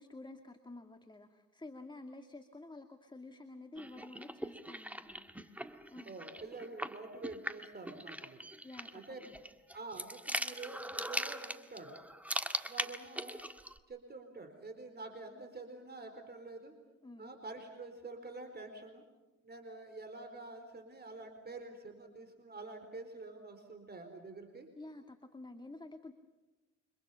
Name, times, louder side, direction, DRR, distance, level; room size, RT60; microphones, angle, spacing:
voice 1, 0.0-6.2 8.6-9.4 17.0-17.3 24.8-26.1, left 2 dB, 15° left, 6 dB, 2.2 m, -51 dB
sound 1, 3.8-13.8, right 1 dB, 5° right, 1.8 m, -41 dB
voice 2, 6.1-8.5 8.9-9.2 9.7-12.0 12.6-13.4 13.9-16.7 17.2-19.0 19.4-24.7, right 3 dB, 35° right, 6 dB, 4.3 m, -47 dB
29.5 x 25.5 x 5.7 m, 1.2 s
cardioid pair, 90°, 30 cm